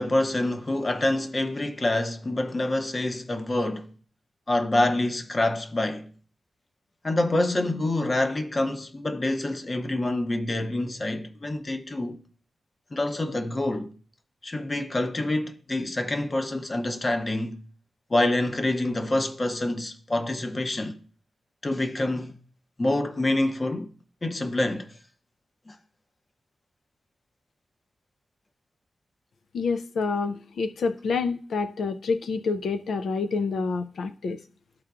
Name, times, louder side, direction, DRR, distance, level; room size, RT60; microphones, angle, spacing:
voice 1, 0.0-3.9 4.5-6.1 7.0-12.2 12.9-13.9 14.4-17.6 18.1-21.0 21.6-22.4 22.8-23.9 24.2-24.9 25.7-25.8, left 1 dB, 30° left, 0.8 m, -26 dB
voice 2, 29.5-34.4, left 4 dB, 80° left, 0.4 m, -28 dB
13.0 x 4.4 x 2.4 m
wide cardioid pair, 110°, 0 cm